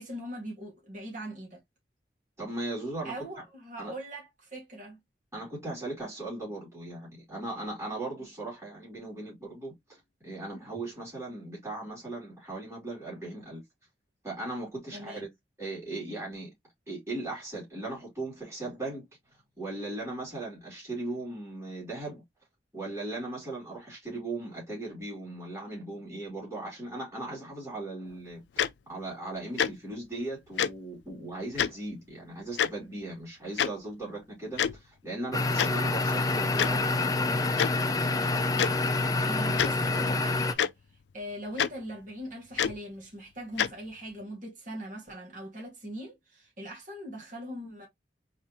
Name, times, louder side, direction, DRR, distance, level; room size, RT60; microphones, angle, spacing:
voice 1, 0.0-1.6 3.0-5.0 14.9-15.3 39.3-40.7 41.1-47.9, right 1 dB, 45° right, 2.0 m, -41 dB
voice 2, 2.4-3.1 3.8-3.9 5.3-9.7 10.2-13.6 14.2-15.3 15.6-16.5 16.9-19.0 19.6-22.2 22.7-28.4 28.9-37.1, right 2 dB, 15° right, 3.1 m, -38 dB
Tick-tock, 28.6-28.7 29.6-29.7 30.6-30.7 31.6-31.7 32.6-32.7 33.6-33.7 34.6-34.8 35.6-35.7 36.6-36.7 37.6-37.7 38.6-38.7 39.5-39.7 40.6-40.7 41.6-41.7 42.6-42.8 43.6-43.7, left 8 dB, 85° left, 0.4 m, -26 dB
sound 1, 35.3-40.5, left 3 dB, 20° left, 0.4 m, -27 dB
4.2 x 3.6 x 3.0 m
head